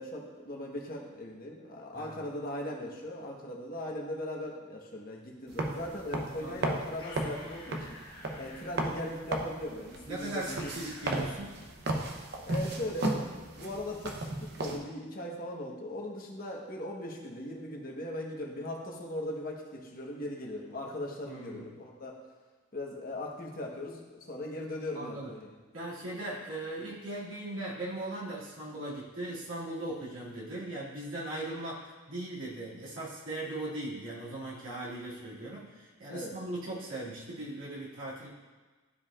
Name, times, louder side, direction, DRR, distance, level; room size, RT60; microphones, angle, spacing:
voice 1, 0.0-7.9 8.3-10.7 12.4-22.2 22.7-25.5 36.1-36.3, left 1 dB, 45° left, -1 dB, 1.2 m, -39 dB
sound 1, 5.5-14.8, right 2 dB, 55° right, 0.8 m, -35 dB
sound 2, 6.9-8.7 10.5-11.3, left 1 dB, 25° left, 1.4 m, -49 dB
voice 2, 10.1-11.6 21.2-21.6 24.9-25.3 25.7-38.3, right 1 dB, 85° right, -7 dB, 2.3 m, -39 dB
12.5 x 4.9 x 2.5 m, 1.3 s
head